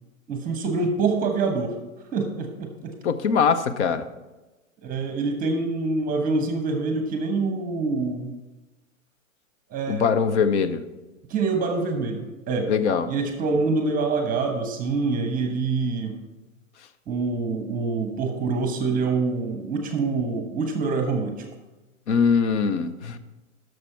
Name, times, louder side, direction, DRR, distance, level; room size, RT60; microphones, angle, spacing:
voice 1, 0.3-1.7 2.1-2.9 4.8-8.3 9.7-10.1 11.3-12.7 13.1-16.1 17.1-21.5, right 4 dB, 20° right, 5 dB, 1.1 m, -25 dB
voice 2, 3.0-4.1 9.9-10.8 12.7-13.1 22.1-23.2, left 6 dB, 60° left, 11 dB, 0.9 m, -22 dB
11.0 x 6.6 x 4.5 m, 1.1 s
hypercardioid pair, 125°, 40 cm